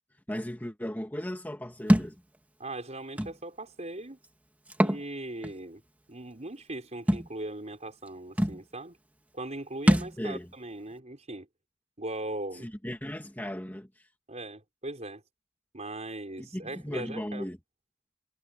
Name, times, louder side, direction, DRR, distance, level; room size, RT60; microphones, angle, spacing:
voice 1, 0.3-2.2 10.2-10.5 12.6-14.1 16.4-17.6, equal, 10° left, 2.0 m, -36 dB
Thump thud, 1.9-2.1 3.2-3.3 4.7-5.0 5.4-5.5 7.1-7.3 8.1-8.2 8.4-8.6 9.9-10.2, equal, 10° right, 1.9 m, -23 dB
voice 2, 2.6-4.2 4.8-5.8 6.1-9.0 9.3-11.5 12.0-12.7 14.3-15.2 15.7-17.4, right 2 dB, 35° right, 4.7 m, -39 dB
head